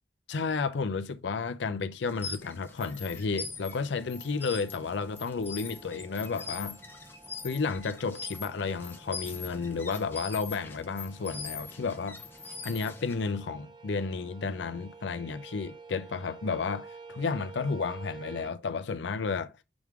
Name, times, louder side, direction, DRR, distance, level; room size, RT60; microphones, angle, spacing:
voice 1, 0.3-6.8 7.4-12.2 12.6-19.5, left 4 dB, 75° left, 0.5 m, -32 dB
sound 1, 2.0-13.3, left 4 dB, 10° left, 0.7 m, -43 dB
sound 2, 3.9-18.5, right 4 dB, 25° right, 0.6 m, -51 dB
6.1 x 3.6 x 4.6 m
head